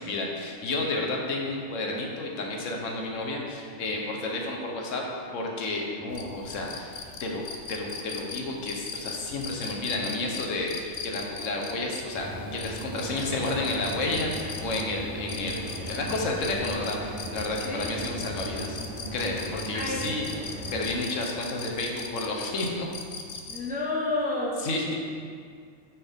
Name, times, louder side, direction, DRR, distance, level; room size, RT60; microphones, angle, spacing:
voice 1, 0.0-5.0 5.3-6.9 7.2-18.8 19.1-22.9 24.6-25.0, left 2 dB, 85° left, 0 dB, 1.3 m, -31 dB
sound 1, 6.1-23.7, left 5 dB, 55° left, 0.7 m, -40 dB
sound 2, 12.1-21.0, right 1 dB, 80° right, 1.7 m, -37 dB
voice 2, 19.7-20.1 23.5-24.6, left 2 dB, 10° right, -4 dB, 0.8 m, -29 dB
9.0 x 4.4 x 3.5 m, 2.1 s
omnidirectional pair, 1.3 m